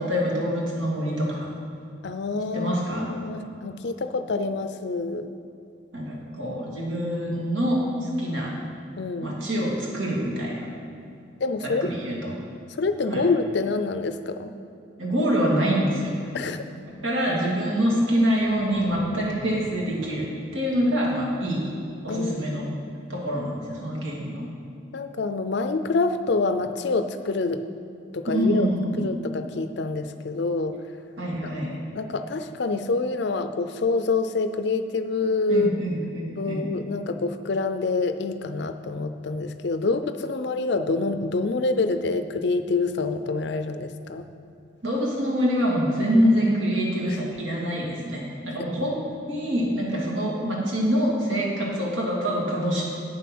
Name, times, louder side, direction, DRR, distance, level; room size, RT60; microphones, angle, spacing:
voice 1, 0.0-1.5 2.5-3.1 5.9-8.5 9.2-10.7 11.6-12.4 13.1-13.3 15.0-16.1 16.9-20.3 20.5-21.7 22.0-22.7 23.1-24.5 28.3-29.1 31.2-31.7 35.5-36.7 44.8-49.0 49.3-52.8, equal, 80° right, -3 dB, 2.4 m, -25 dB
voice 2, 2.0-5.3 9.0-9.3 11.4-11.9 12.8-14.5 16.3-16.6 22.1-22.7 24.9-27.7 28.1-28.7 29.0-30.8 31.7-35.7 36.4-44.3 47.1-47.2 48.6-48.7, left 3 dB, 60° left, 9 dB, 0.5 m, -26 dB
sound 1, 17.6-21.6, right 1 dB, 55° right, 1.5 m, -43 dB
9.0 x 7.1 x 6.0 m, 2.7 s
head